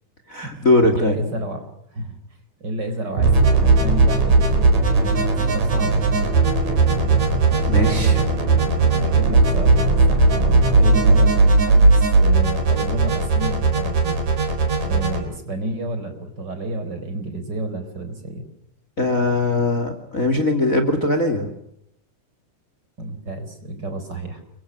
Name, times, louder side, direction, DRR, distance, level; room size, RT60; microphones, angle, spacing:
voice 1, 0.3-1.2 7.7-8.2 19.0-21.5, left 2 dB, 25° left, 7 dB, 2.6 m, -20 dB
voice 2, 0.9-2.2 2.6-6.0 7.8-8.2 9.0-14.2 14.8-18.4 23.0-24.4, right 1 dB, 30° right, 7 dB, 4.5 m, -30 dB
sound 1, 3.2-15.2, right 3 dB, 65° right, 5.7 m, -17 dB
Musical instrument, 3.2-11.7, right 4 dB, 90° right, 4.6 m, -26 dB
30.0 x 24.0 x 6.2 m, 0.71 s
omnidirectional pair, 3.6 m